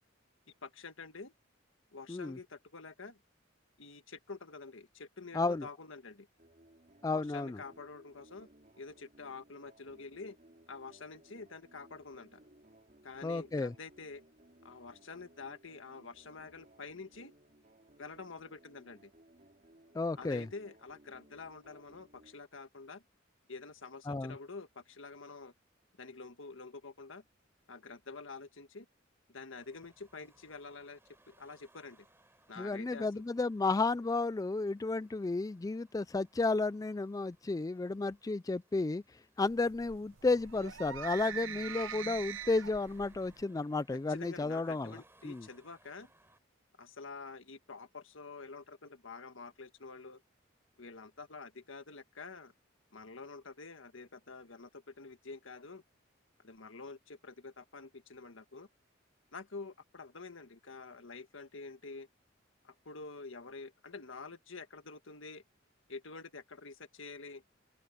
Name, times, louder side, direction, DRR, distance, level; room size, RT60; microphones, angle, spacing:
voice 1, 0.6-1.3 1.9-3.2 3.8-6.3 7.1-8.5 8.8-10.4 10.7-12.4 13.0-14.2 14.6-17.3 18.0-19.1 20.1-23.0 23.5-25.5 26.0-27.2 27.7-28.9 29.3-31.0 31.3-32.1 32.5-33.2 43.9-46.1 46.8-50.2 50.8-52.5 52.9-55.8 56.4-58.7 59.3-62.1 62.6-65.4 65.9-67.4, left 4 dB, 85° left, 1.7 m, -48 dB
voice 2, 5.3-5.7 7.0-7.6 13.2-13.7 19.9-20.5 24.1-24.3 32.6-39.0 39.4-44.9 45.2-45.4, left 3 dB, 20° left, 0.3 m, -32 dB
sound 1, 6.4-22.4, right 1 dB, 40° right, 3.9 m, -62 dB
Car passing by / Traffic noise roadway noise / Engine, 29.5-46.4, right 2 dB, 10° right, 7.9 m, -68 dB
sound 2, 39.5-43.4, right 8 dB, 90° right, 0.8 m, -43 dB
head